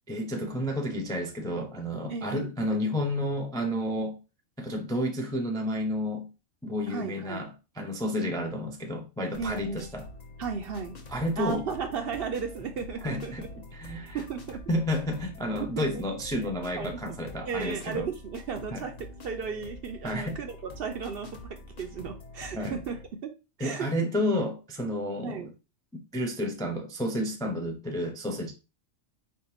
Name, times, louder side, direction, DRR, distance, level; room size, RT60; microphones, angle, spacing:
voice 1, 0.1-4.2 4.6-6.3 6.6-10.0 11.1-11.7 13.0-13.4 13.7-14.2 14.7-18.1 18.7-18.8 20.0-20.4 22.5-22.8 23.6-25.4 26.1-28.5, left 1 dB, 5° left, 0.3 m, -31 dB
voice 2, 2.1-2.5 6.9-7.4 9.4-9.9 10.4-11.0 11.4-13.5 14.1-14.7 15.6-16.0 16.8-17.2 17.4-23.0 23.6-23.9 25.2-25.5, right 6 dB, 60° right, 0.7 m, -35 dB
sound 1, 9.3-23.1, left 1 dB, 40° left, 0.8 m, -46 dB
4.5 x 3.5 x 2.9 m
omnidirectional pair, 1.3 m